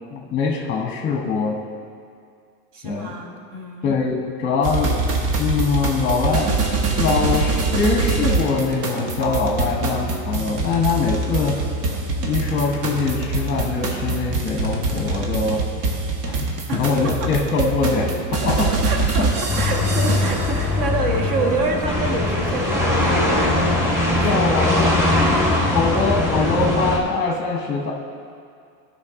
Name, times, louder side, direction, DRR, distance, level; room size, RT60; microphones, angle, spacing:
voice 1, 0.1-1.6 2.8-3.1 3.8-5.1 5.4-6.6 7.0-11.6 12.2-15.6 16.3-16.4 16.7-18.7 19.2-19.3 24.2-24.9 25.7-27.9, left 4 dB, 25° left, 0 dB, 1.0 m, -23 dB
voice 2, 2.7-3.9 16.7-17.3 18.4-25.7, right 3 dB, 45° right, 2 dB, 1.4 m, -28 dB
sound 1, 4.6-20.5, right 3 dB, 75° right, 1.4 m, -24 dB
sound 2, 19.5-27.0, left 2 dB, 5° right, 1.5 m, -20 dB
12.5 x 5.7 x 3.7 m, 2.3 s
supercardioid pair, 110°, 46 cm